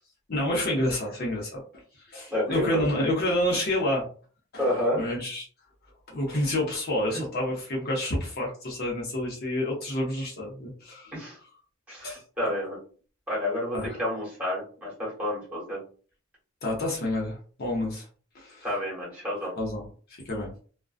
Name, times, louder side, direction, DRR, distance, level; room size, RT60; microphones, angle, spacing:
voice 1, 0.3-1.6 2.0-4.0 4.5-5.5 6.1-11.1 12.0-12.2 13.7-14.0 16.6-18.0 18.3-18.7 19.6-19.8 20.2-20.5, left 1 dB, 45° left, -2 dB, 0.7 m, -29 dB
voice 2, 2.3-2.8 4.6-5.0 11.1-11.4 11.9-12.8 13.3-15.8 18.6-19.5, left 1 dB, 5° right, -7 dB, 1.2 m, -30 dB
2.4 x 2.2 x 2.4 m, 0.41 s
head